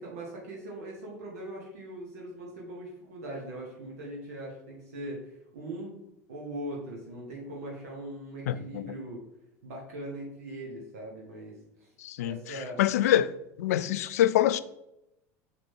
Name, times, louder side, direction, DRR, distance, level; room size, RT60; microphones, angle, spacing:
voice 1, 0.0-5.9 6.3-9.2 9.6-11.9 12.2-12.8, right 1 dB, 75° right, 1.6 m, -40 dB
voice 2, 8.5-8.8 12.0-12.3 12.8-13.3 13.6-14.6, left 12 dB, 70° left, 0.4 m, -25 dB
6.6 x 5.1 x 3.7 m
hypercardioid pair, 80°, 8 cm